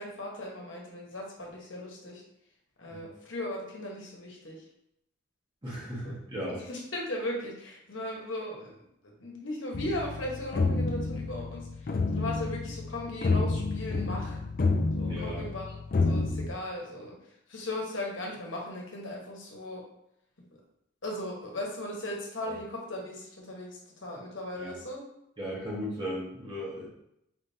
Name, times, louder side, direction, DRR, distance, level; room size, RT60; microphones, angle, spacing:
voice 1, 0.0-2.2 2.8-4.6 6.0-6.1 6.5-14.4 15.0-17.2 17.5-19.8 21.0-25.0, left 1 dB, 70° left, -2 dB, 1.1 m, -37 dB
voice 2, 5.6-6.6 15.0-15.4 22.5-22.6 24.6-24.7 25.4-26.9, equal, 25° right, -6 dB, 1.4 m, -36 dB
sound 1, 9.7-16.5, left 3 dB, 45° left, 0.4 m, -29 dB
5.0 x 3.4 x 2.7 m, 0.80 s
head